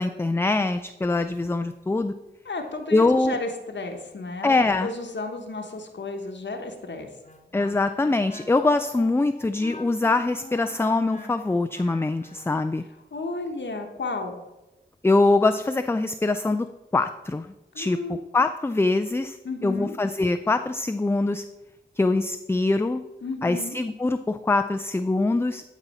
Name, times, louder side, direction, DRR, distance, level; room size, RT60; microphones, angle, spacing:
voice 1, 0.0-2.1 2.9-3.3 4.4-4.9 7.5-12.8 15.0-16.7 16.9-17.5 17.8-18.0 18.3-19.4 19.6-21.4 22.0-23.0 23.4-25.7, left 2 dB, 15° left, 9 dB, 0.3 m, -23 dB
voice 2, 2.4-4.5 4.8-7.1 13.1-14.4 17.7-18.2 19.4-19.9 23.2-23.8, left 3 dB, 70° left, 3 dB, 1.0 m, -33 dB
Wind instrument woodwind instrument, 7.2-12.6, left 2 dB, 40° left, 1.0 m, -44 dB
11.5 x 4.1 x 4.1 m, 1.0 s
cardioid pair, 50°, 19 cm